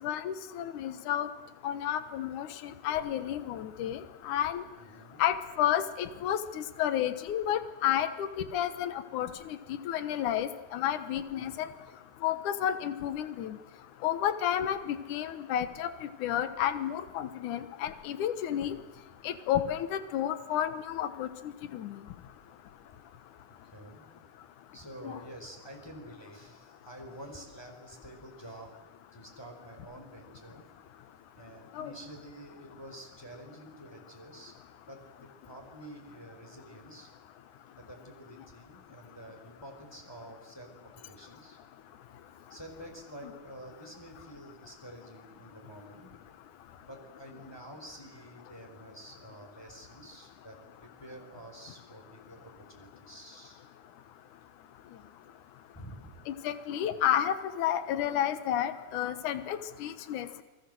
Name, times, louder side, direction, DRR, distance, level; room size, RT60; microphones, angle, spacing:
voice 1, 0.0-1.3 1.6-4.6 5.2-11.7 12.2-13.6 14.0-18.8 19.2-22.0 25.0-25.2 31.8-31.9 56.3-60.4, left 10 dB, 80° left, 12 dB, 2.7 m, -31 dB
voice 2, 4.8-5.2 11.3-11.7 18.5-18.9 19.6-19.9 23.5-24.1 24.7-28.7 29.1-30.6 31.3-34.5 34.9-37.1 37.7-41.6 42.5-46.1 46.9-53.7 55.7-56.3, right 1 dB, 5° left, 2 dB, 4.1 m, -49 dB
29.0 x 20.5 x 7.8 m, 1.1 s
omnidirectional pair, 3.5 m